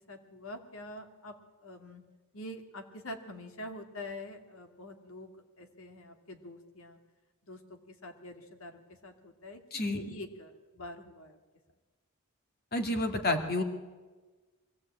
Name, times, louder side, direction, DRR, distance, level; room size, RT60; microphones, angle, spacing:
voice 1, 0.1-1.3 1.6-2.0 2.3-5.3 5.6-7.0 7.5-11.4, left 1 dB, 65° left, 6 dB, 2.3 m, -45 dB
voice 2, 12.7-13.6, left 2 dB, 45° left, 5 dB, 2.3 m, -29 dB
23.0 x 15.5 x 8.8 m, 1.3 s
head